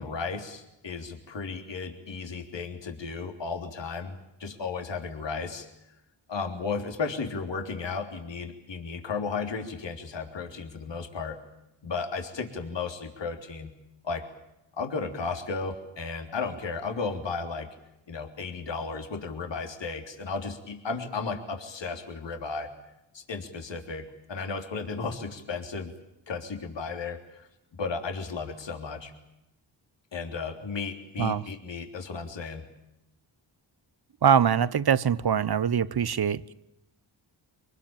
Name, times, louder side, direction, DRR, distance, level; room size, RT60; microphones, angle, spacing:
voice 1, 0.0-5.7 6.3-11.4 11.8-13.7 14.0-14.3 14.7-17.8 18.1-22.7 23.1-25.9 26.3-27.5 27.8-29.1 30.1-32.7, left 4 dB, 60° left, 3.5 m, -34 dB
voice 2, 34.2-36.5, right 8 dB, 50° right, 1.1 m, -23 dB
24.5 x 20.0 x 9.0 m
supercardioid pair, 45°, 48 cm